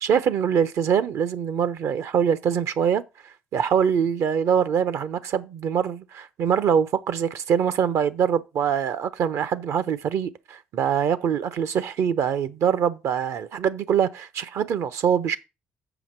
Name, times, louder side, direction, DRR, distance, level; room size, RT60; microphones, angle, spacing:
voice 1, 0.0-3.0 3.5-15.4, right 8 dB, 65° right, 0.7 m, -23 dB
7.0 x 5.7 x 4.4 m
hypercardioid pair, 50°, 5 cm